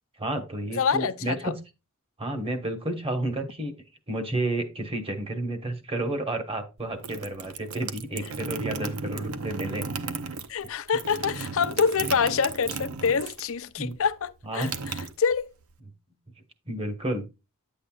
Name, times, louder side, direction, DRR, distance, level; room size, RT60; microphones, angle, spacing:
voice 1, 0.2-1.5 2.2-3.7 4.1-9.8 13.8-13.9 14.5-14.7 16.7-17.2, right 1 dB, 25° right, 1.4 m, -31 dB
voice 2, 0.7-1.5 10.5-14.7 15.2-15.5, left 6 dB, 65° left, 0.6 m, -26 dB
sound 1, 6.8-13.6 13.8-15.7, right 4 dB, 75° right, 0.7 m, -35 dB
9.7 x 8.0 x 2.4 m
head